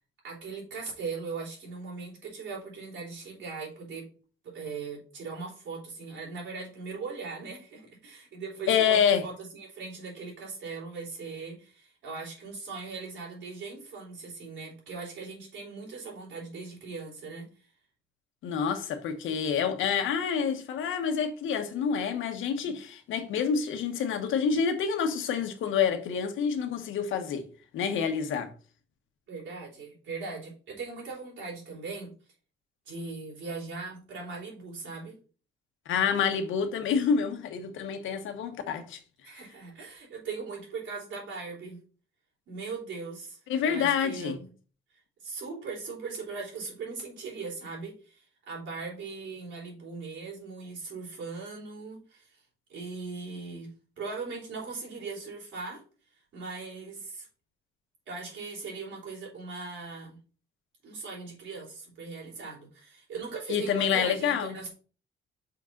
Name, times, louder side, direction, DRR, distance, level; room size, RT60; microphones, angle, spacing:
voice 1, 0.2-4.1 4.4-17.5 29.3-32.1 32.9-35.2 39.2-41.8 42.5-44.5 45.2-52.4 52.7-55.8 56.3-57.3 58.1-60.2 60.8-64.7, right 4 dB, 75° right, 3.6 m, -39 dB
voice 2, 8.7-9.2 18.4-27.4 27.7-28.5 35.9-39.0 43.5-44.4 63.5-64.6, left 7 dB, 80° left, 1.2 m, -27 dB
5.9 x 3.8 x 5.8 m
cardioid pair, 90°, 20 cm